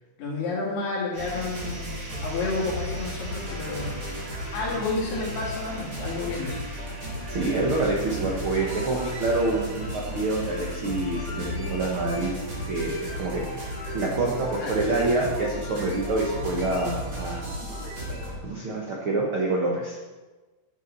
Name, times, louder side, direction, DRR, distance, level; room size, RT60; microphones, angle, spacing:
voice 1, 0.2-4.0 4.5-6.6 14.6-14.8, left 3 dB, 80° left, -4 dB, 4.9 m, -30 dB
sound 1, 1.1-16.7, right 1 dB, 40° right, 3.4 m, -45 dB
sound 2, 1.2-18.3, equal, 25° right, 3.6 m, -34 dB
voice 2, 7.3-12.3 12.7-13.5 13.9-17.4 18.2-20.0, right 2 dB, 75° right, -2 dB, 1.2 m, -27 dB
14.0 x 8.5 x 4.1 m, 1.2 s
omnidirectional pair, 4.6 m